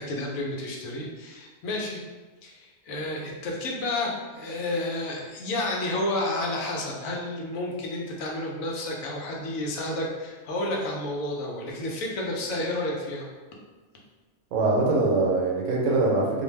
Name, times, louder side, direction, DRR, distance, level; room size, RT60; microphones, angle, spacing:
voice 1, 0.0-2.0 2.4-13.2, left 1 dB, 85° left, -1 dB, 1.0 m, -31 dB
voice 2, 14.5-16.4, right 3 dB, 75° right, -1 dB, 0.9 m, -23 dB
2.6 x 2.2 x 3.1 m, 1.3 s
omnidirectional pair, 1.4 m